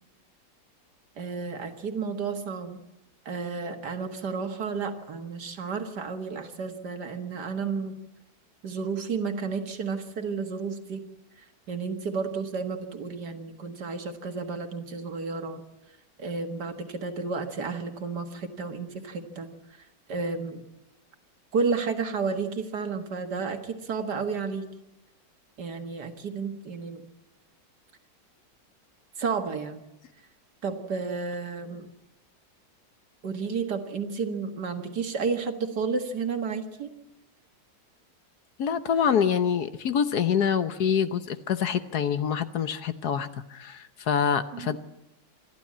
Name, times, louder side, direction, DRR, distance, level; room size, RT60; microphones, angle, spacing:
voice 1, 1.2-2.8 3.3-8.0 8.6-11.0 11.7-15.6 16.2-19.5 20.1-20.6 21.5-24.7 25.6-27.0 29.2-29.8 30.6-31.9 33.2-36.9 44.5-44.8, right 5 dB, 65° right, 6 dB, 2.3 m, -32 dB
voice 2, 38.6-44.8, left 7 dB, 65° left, 11 dB, 1.4 m, -26 dB
26.5 x 12.0 x 8.6 m, 0.93 s
omnidirectional pair, 1.9 m